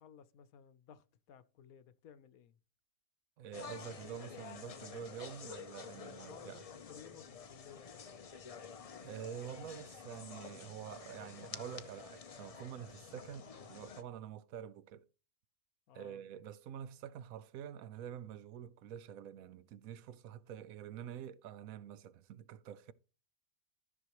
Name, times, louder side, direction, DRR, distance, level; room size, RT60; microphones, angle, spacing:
voice 1, 0.0-2.6 6.2-8.4 13.5-14.0 15.9-16.2, left 8 dB, 85° left, 1.2 m, -58 dB
voice 2, 3.4-6.6 9.0-15.1 15.9-22.9, right 9 dB, 80° right, 1.0 m, -47 dB
sound 1, 3.5-14.0, left 6 dB, 40° left, 0.5 m, -50 dB
13.5 x 6.3 x 3.0 m
omnidirectional pair, 1.5 m